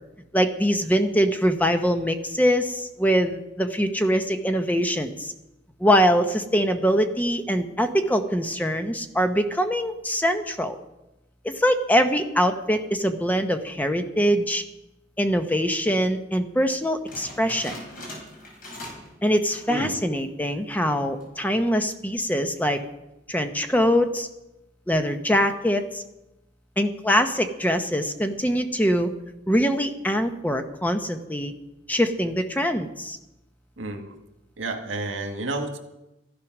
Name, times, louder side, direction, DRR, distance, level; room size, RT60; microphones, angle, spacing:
voice 1, 0.3-5.3 5.8-10.8 11.4-14.6 15.2-17.7 19.2-22.8 23.3-24.3 24.9-26.0 26.8-29.1 29.5-31.5 31.9-33.2, equal, 10° left, 7 dB, 0.9 m, -23 dB
sound 1, 17.1-19.1 19.4-19.8 20.2-20.3 21.0-21.4, left 1 dB, 45° left, 5.4 m, -40 dB
voice 2, 19.7-20.0 33.8-34.1 34.6-35.8, right 2 dB, 90° right, 5 dB, 1.9 m, -30 dB
14.0 x 12.0 x 6.1 m, 0.94 s
head